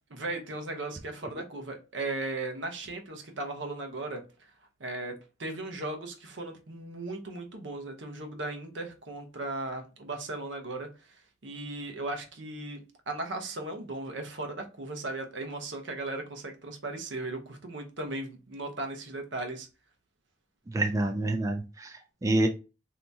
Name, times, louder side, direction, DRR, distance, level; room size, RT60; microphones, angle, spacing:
voice 1, 0.1-4.2 4.8-11.2 11.4-19.7, right 2 dB, 75° right, 0.8 m, -37 dB
voice 2, 20.7-22.5, right 2 dB, 20° right, 0.3 m, -27 dB
3.4 x 2.8 x 2.7 m
head